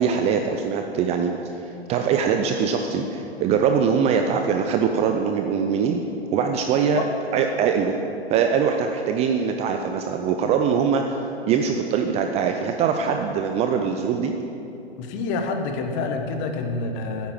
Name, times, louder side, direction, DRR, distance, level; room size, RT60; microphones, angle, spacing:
voice 1, 0.0-1.4 1.9-6.0 6.3-7.0 7.3-8.0 8.3-11.2 11.4-14.3, right 6 dB, 20° right, 5 dB, 0.5 m, -22 dB
voice 2, 15.0-17.3, left 4 dB, 35° left, 5 dB, 1.3 m, -27 dB
9.4 x 9.2 x 7.3 m, 2.8 s
hypercardioid pair, 120°, 33 cm